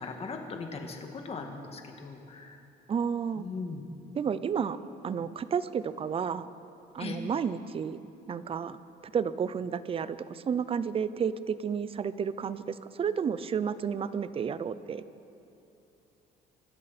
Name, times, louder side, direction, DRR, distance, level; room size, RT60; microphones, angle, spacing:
voice 1, 0.0-2.6 3.4-3.8 7.0-7.2, left 4 dB, 35° left, 3 dB, 1.9 m, -39 dB
voice 2, 2.9-3.4 4.2-4.8 5.0-6.5 6.9-8.0 8.3-8.8 9.1-15.0, right 7 dB, 35° right, 15 dB, 0.6 m, -31 dB
25.5 x 12.5 x 4.3 m, 2.8 s
cardioid pair, 110°, 17 cm